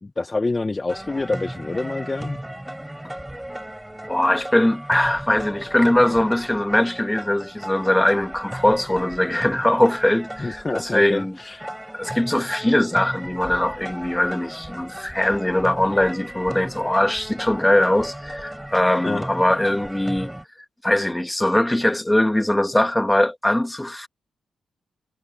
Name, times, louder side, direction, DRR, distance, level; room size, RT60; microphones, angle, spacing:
voice 1, 0.0-2.4 10.4-11.7 19.0-19.2, left 3 dB, 30° left, 1.0 m, -26 dB
sound 1, 0.9-20.4, right 1 dB, 10° right, 4.5 m, -36 dB
voice 2, 4.1-11.4 11.9-20.3 20.8-24.1, left 1 dB, 10° left, 1.9 m, -21 dB
cardioid pair, 70°, 0 cm